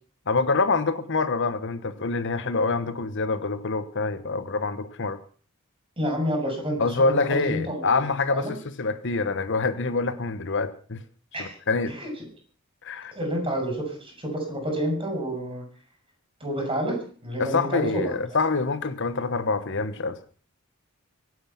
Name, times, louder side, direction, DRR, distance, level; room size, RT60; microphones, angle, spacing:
voice 1, 0.3-5.2 6.8-11.0 11.4-11.9 12.8-13.1 17.4-20.2, left 3 dB, 60° left, 1.2 m, -26 dB
voice 2, 6.0-8.5 11.3-11.6 11.9-12.1 13.1-15.6 16.4-18.1, equal, 25° right, 7.9 m, -29 dB
24.0 x 9.5 x 5.9 m
head